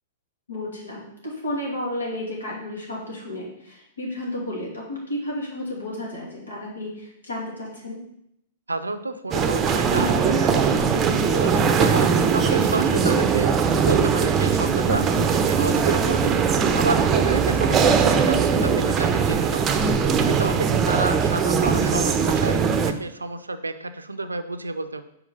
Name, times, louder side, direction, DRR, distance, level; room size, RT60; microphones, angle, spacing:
voice 1, 0.5-8.0 15.1-15.4, left 1 dB, 85° left, -3 dB, 2.4 m, -32 dB
voice 2, 8.7-15.1 15.5-16.4 16.8-19.6 20.0-25.0, right 3 dB, 90° right, 11 dB, 0.5 m, -30 dB
sound 1, 9.3-22.9, right 6 dB, 25° right, 0.6 m, -20 dB
4.9 x 4.7 x 5.4 m, 0.77 s
figure-of-eight pair, 110°, 0 cm